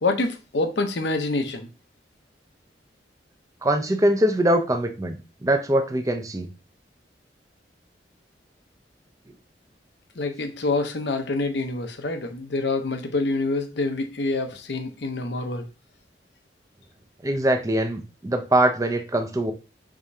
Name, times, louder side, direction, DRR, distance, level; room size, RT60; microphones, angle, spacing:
voice 1, 0.0-1.7 10.2-15.7, left 3 dB, 70° left, 0.8 m, -26 dB
voice 2, 3.6-6.5 17.2-19.5, right 1 dB, 20° right, 0.5 m, -22 dB
4.9 x 3.6 x 2.7 m
head